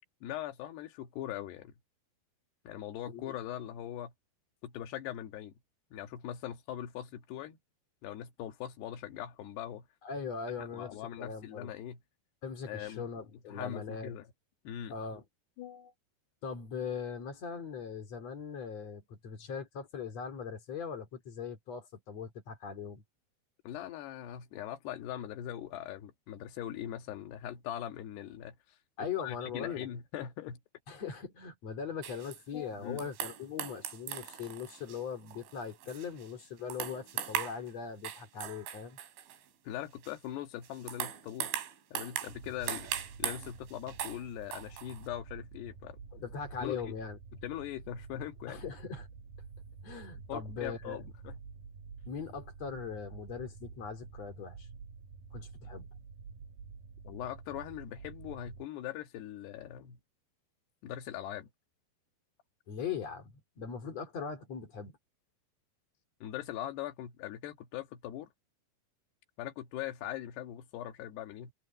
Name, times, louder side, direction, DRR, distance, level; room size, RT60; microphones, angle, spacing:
voice 1, 0.2-1.7 2.6-4.1 4.6-5.5 5.9-7.6 8.0-9.9 10.6-12.0 12.7-13.1 13.5-14.3 14.6-15.0 15.6-15.9 23.6-28.6 29.0-30.6 32.5-33.1 39.6-41.5 41.9-42.9 43.2-46.3 46.6-46.9 47.3-48.7 50.2-51.4 57.0-60.0 60.8-61.5 66.2-68.3 69.4-71.5, left 11 dB, 65° left, 3.4 m, -41 dB
voice 2, 10.0-11.7 12.4-14.1 14.9-15.2 16.4-23.0 29.0-29.9 30.9-39.0 46.1-47.2 48.5-49.1 49.8-51.0 52.1-54.7 55.3-55.9 62.7-65.0, left 6 dB, 40° left, 3.1 m, -40 dB
sound 1, 32.0-32.4 33.0-36.4 36.7-37.7 38.0-39.4 40.0-40.1 40.6-44.2 44.5-45.1, right 10 dB, 80° right, 4.9 m, -39 dB
sound 2, 42.3-58.6, right 5 dB, 55° right, 5.1 m, -49 dB
omnidirectional pair, 5.4 m